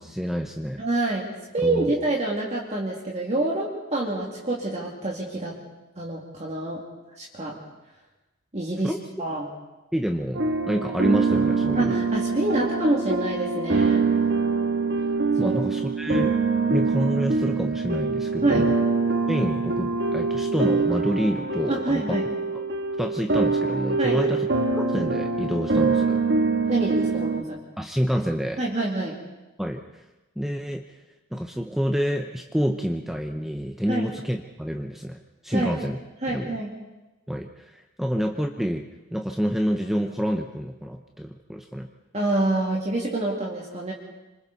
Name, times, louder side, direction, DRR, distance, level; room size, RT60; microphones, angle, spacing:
voice 1, 0.0-1.1 1.6-1.9 8.8-9.0 9.9-12.0 15.4-16.3 16.7-18.8 19.3-22.2 22.5-22.7 23.0-24.5 24.7-26.2 27.8-28.6 29.6-30.0 30.4-31.0 31.3-36.0 36.3-36.6 37.3-41.9, equal, ahead, 4 dB, 0.7 m, -28 dB
voice 2, 0.8-5.5 6.0-6.8 7.2-7.6 8.5-8.9 9.2-9.5 11.8-14.0 15.4-15.6 18.4-18.7 21.7-22.3 24.0-24.2 26.7-27.6 28.6-29.2 33.9-34.1 35.5-35.7 36.2-36.7 42.1-43.9, right 2 dB, 30° right, -2 dB, 2.4 m, -27 dB
sound 1, 10.3-27.4, right 4 dB, 55° right, 1.6 m, -24 dB
26.5 x 25.5 x 4.1 m, 1.1 s
head